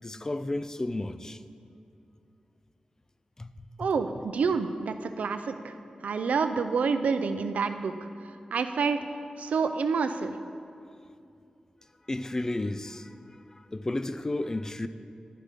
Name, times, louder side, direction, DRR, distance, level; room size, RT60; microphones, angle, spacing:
voice 1, 0.0-1.4 3.4-3.9 12.1-14.9, left 2 dB, 25° left, 0.3 m, -33 dB
voice 2, 3.8-5.7 6.0-7.9 8.5-9.0 9.4-10.4, right 5 dB, 90° right, 0.4 m, -28 dB
11.5 x 5.2 x 4.9 m
wide cardioid pair, 95°, 2 cm